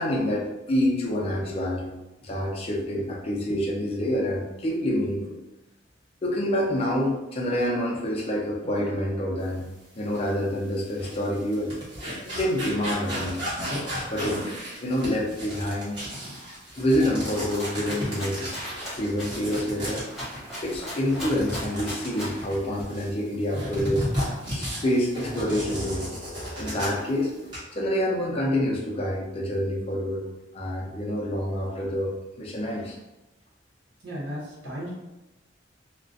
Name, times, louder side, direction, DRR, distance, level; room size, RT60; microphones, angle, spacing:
voice 1, 0.0-1.9 2.2-5.3 6.2-9.6 10.0-11.7 12.2-13.5 14.1-16.0 16.8-18.6 19.0-20.0 20.6-24.1 24.5-26.1 26.6-30.3 30.5-33.0, equal, 35° left, -2 dB, 0.4 m, -27 dB
sound 1, 10.1-10.3 10.8-23.1 23.5-27.1 27.3-27.6, equal, 25° right, 1.0 m, -34 dB
Rattle (instrument), 17.2-22.5, equal, ahead, 1.0 m, -38 dB
voice 2, 34.0-35.0, equal, 90° right, -7 dB, 0.9 m, -35 dB
2.4 x 2.1 x 2.5 m, 1.0 s
head